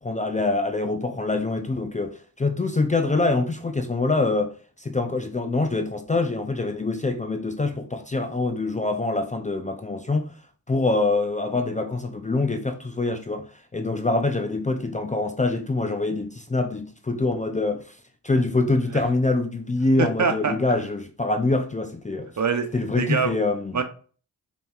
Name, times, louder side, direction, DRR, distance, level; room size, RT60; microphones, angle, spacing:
voice 1, 0.0-10.3 10.7-18.0 18.2-22.3 22.7-23.8, left 2 dB, 20° left, 0.5 m, -25 dB
voice 2, 20.0-20.5 22.4-22.7 22.9-23.4 23.7-23.8, right 5 dB, 45° right, 0.9 m, -23 dB
5.1 x 3.1 x 2.4 m
supercardioid pair, 45°, 42 cm